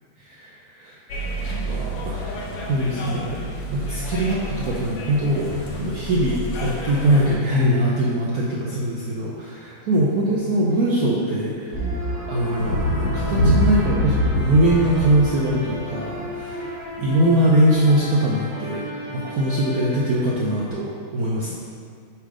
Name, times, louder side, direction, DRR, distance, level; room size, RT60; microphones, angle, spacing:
voice 1, 0.3-1.0 1.5-3.4 3.7-5.5 5.8-11.9 12.3-16.7 17.0-18.8 19.1-21.5, right 1 dB, 70° right, -5 dB, 0.8 m, -22 dB
sound 1, 1.1-7.4, right 1 dB, 90° left, 1.9 m, -31 dB
sound 2, 11.7-20.7, equal, 50° right, 1.9 m, -33 dB
Thunder, 12.6-16.5 17.8-17.9, equal, 60° left, 1.1 m, -23 dB
7.4 x 3.5 x 4.9 m, 2.2 s
omnidirectional pair, 2.4 m